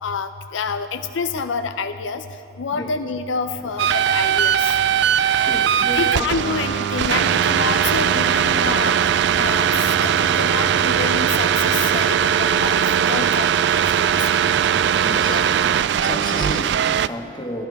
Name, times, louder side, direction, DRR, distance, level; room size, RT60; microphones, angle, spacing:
voice 1, 0.0-2.2 2.6-4.8 5.9-9.0 9.4-14.3 15.3-15.5, left 5 dB, 80° left, 8 dB, 0.5 m, -28 dB
sound 1, 3.5-10.1, right 1 dB, 40° right, 1.4 m, -41 dB
sound 2, 3.8-17.1, right 9 dB, 60° right, 0.3 m, -19 dB
sound 3, 5.1-14.9, right 3 dB, 85° right, 3.0 m, -46 dB
voice 2, 5.4-6.2 15.0-15.4 16.0-17.7, left 1 dB, 25° left, 1 dB, 1.5 m, -32 dB
29.0 x 11.5 x 3.5 m, 2.9 s
head